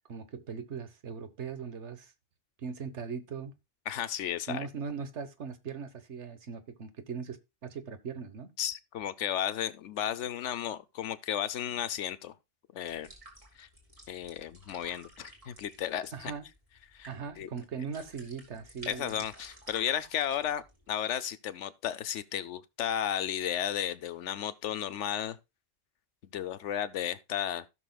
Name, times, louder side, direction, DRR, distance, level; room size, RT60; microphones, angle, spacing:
voice 1, 0.1-2.1 2.6-3.6 4.5-8.5 16.1-16.4 17.1-19.1, right 6 dB, 75° right, 1.4 m, -39 dB
voice 2, 3.9-4.7 8.6-12.3 12.7-13.1 13.6-13.7 14.1-16.3 16.9-17.1 17.4-17.5 18.9-25.4 26.3-27.7, left 10 dB, 85° left, 1.0 m, -34 dB
sound 1, 12.9-20.9, right 1 dB, 30° right, 2.8 m, -53 dB
16.0 x 6.1 x 2.3 m
omnidirectional pair, 1.2 m